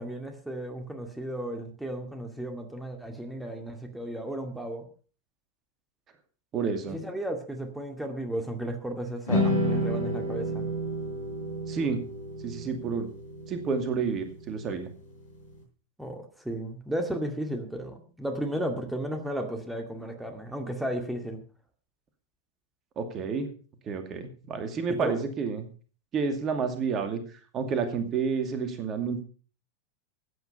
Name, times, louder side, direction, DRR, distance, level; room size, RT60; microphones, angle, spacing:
voice 1, 0.0-4.9 6.9-10.7 16.0-21.4 25.0-25.2, right 1 dB, 5° right, 5 dB, 2.2 m, -34 dB
voice 2, 6.5-7.0 11.7-12.0 12.4-13.1 13.5-14.9 23.0-23.5 23.9-25.7 26.1-27.2 27.5-29.2, right 5 dB, 30° right, 7 dB, 2.4 m, -30 dB
sound 1, 9.3-15.5, equal, 65° left, 7.1 m, -31 dB
15.5 x 9.4 x 5.5 m, 0.39 s
figure-of-eight pair, 90°, 0 cm